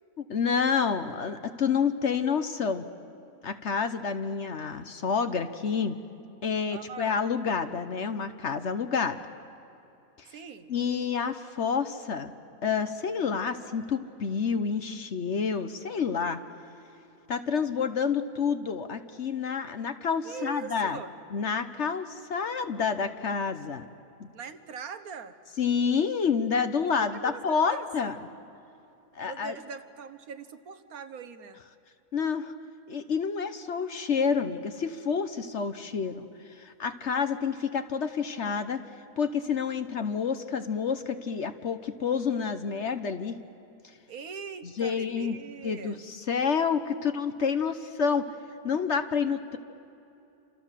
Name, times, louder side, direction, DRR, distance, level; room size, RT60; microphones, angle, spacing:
voice 1, 0.2-2.9 3.4-6.0 6.4-9.2 10.7-12.3 12.6-16.4 17.3-21.0 21.3-23.8 24.2-24.3 25.6-28.2 29.1-29.6 32.1-32.5 32.9-38.8 39.2-43.4 44.6-45.4 45.6-48.2 48.6-49.6, left 6 dB, 50° left, 10 dB, 1.1 m, -29 dB
voice 2, 6.7-7.2 10.3-10.7 20.2-21.1 24.3-25.3 27.0-28.1 29.2-31.6 44.1-46.0, right 6 dB, 70° right, 10 dB, 1.6 m, -42 dB
28.5 x 26.5 x 7.5 m, 2.9 s
omnidirectional pair, 1.6 m